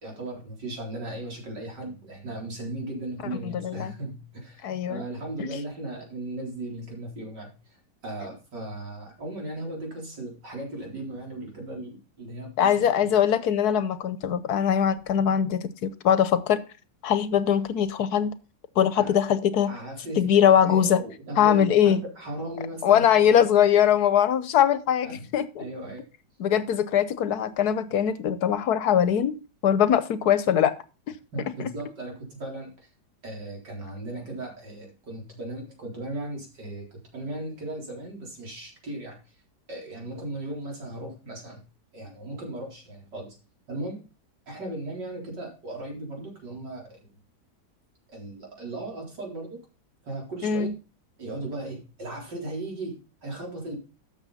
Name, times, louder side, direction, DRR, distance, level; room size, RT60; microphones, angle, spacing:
voice 1, 0.0-12.7 13.0-13.1 18.9-19.2 19.7-23.0 23.4-23.5 25.0-25.3 25.6-26.0 31.3-32.9 33.2-39.4 39.7-41.6 41.9-43.4 43.7-44.0 44.5-47.0 48.1-49.6 50.0-50.7 51.2-53.8, right 1 dB, 75° right, 0 dB, 4.6 m, -37 dB
voice 2, 3.4-3.9 4.6-5.0 5.4-5.5 12.6-16.6 17.0-18.3 18.8-19.7 20.2-21.0 21.4-22.0 22.8-25.7 26.4-29.3 29.6-30.7 50.4-50.7, left 9 dB, 70° left, 14 dB, 1.3 m, -22 dB
12.5 x 7.1 x 4.1 m, 0.32 s
omnidirectional pair, 1.9 m